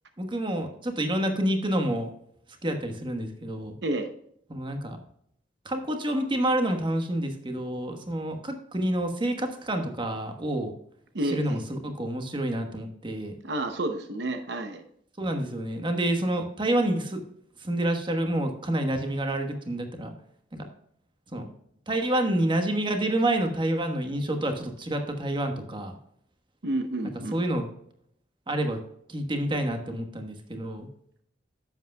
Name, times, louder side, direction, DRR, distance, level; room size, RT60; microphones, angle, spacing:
voice 1, 0.2-2.1 2.6-3.7 4.5-5.0 5.6-10.7 11.2-13.3 15.2-17.2 17.6-20.1 20.5-20.7 21.3-21.5 21.9-26.0 27.3-27.7 28.5-28.8 29.1-30.9, right 1 dB, 25° right, 5 dB, 1.2 m, -28 dB
voice 2, 11.1-11.6 13.4-14.8 26.6-27.3, right 1 dB, 70° right, 7 dB, 0.8 m, -30 dB
11.0 x 7.9 x 2.3 m, 0.69 s
head